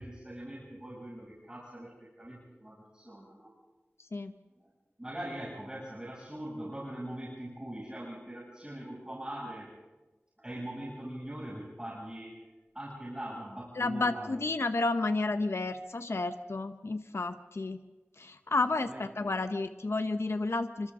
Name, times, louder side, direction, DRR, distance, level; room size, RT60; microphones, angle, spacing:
voice 1, 0.0-3.5 4.6-4.7 5.0-9.7 10.4-12.4 12.7-14.4 18.8-19.3, right 1 dB, 20° right, -6 dB, 6.9 m, -42 dB
voice 2, 4.0-4.3 13.8-17.8 18.2-20.9, left 3 dB, 85° left, 9 dB, 0.8 m, -31 dB
29.0 x 26.0 x 3.7 m, 1.2 s
wide cardioid pair, 50°, 4 cm